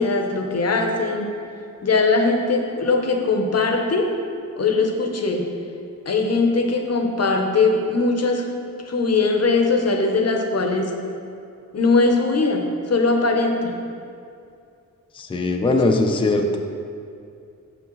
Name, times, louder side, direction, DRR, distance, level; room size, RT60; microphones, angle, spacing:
voice 1, 0.0-1.3 1.8-4.2 4.6-5.5 6.1-8.5 8.9-10.9 11.7-13.8, left 3 dB, 50° left, 3 dB, 0.7 m, -20 dB
voice 2, 15.2-16.6, left 2 dB, 15° left, 4 dB, 0.3 m, -20 dB
7.0 x 6.1 x 3.0 m, 2.5 s
wide cardioid pair, 140°, 34 cm